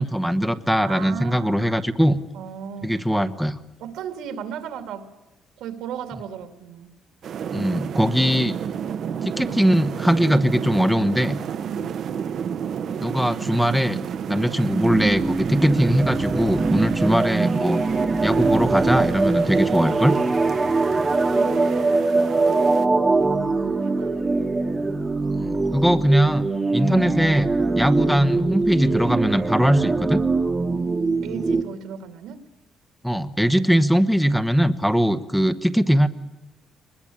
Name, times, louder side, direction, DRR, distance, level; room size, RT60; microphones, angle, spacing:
voice 1, 0.0-2.2 2.8-3.6 7.5-8.5 9.2-11.4 13.0-14.0 14.3-17.8 18.2-20.1 25.4-26.4 26.7-27.5 27.7-30.2 33.0-36.1, equal, ahead, 10 dB, 1.0 m, -20 dB
voice 2, 0.8-1.7 2.3-3.0 3.8-5.1 5.6-6.9 11.7-12.0 21.2-24.5 25.4-25.6 30.7-32.4, right 8 dB, 85° right, 9 dB, 2.7 m, -37 dB
sound 1, 7.2-22.9, right 8 dB, 55° right, 0.9 m, -31 dB
sound 2, 14.7-31.6, right 3 dB, 20° right, 1.3 m, -22 dB
23.0 x 21.0 x 8.8 m, 1.0 s
cardioid pair, 125°, 0 cm